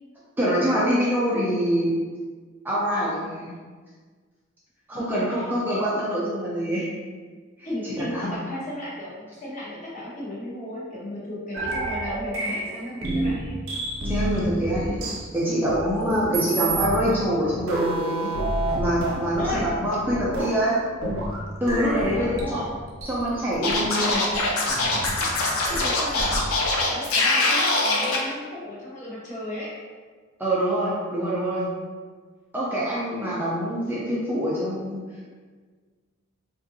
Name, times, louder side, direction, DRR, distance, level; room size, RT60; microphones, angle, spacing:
voice 1, 0.4-1.9 2.6-3.5 4.9-6.9 8.0-8.3 14.0-15.0 15.3-18.3 18.7-20.8 21.6-22.3 23.1-24.2 30.4-31.7 32.5-35.0, equal, 10° right, -8 dB, 0.4 m, -25 dB
voice 2, 4.9-5.4 7.6-13.6 19.4-19.7 22.0-22.7 25.7-26.6 26.9-29.7, left 1 dB, 35° left, -6 dB, 0.9 m, -34 dB
sound 1, 11.5-26.8, right 1 dB, 70° right, 0.8 m, -30 dB
Scratching (performance technique), 23.6-28.2, left 2 dB, 80° left, 0.5 m, -23 dB
3.7 x 2.5 x 2.6 m, 1.5 s
head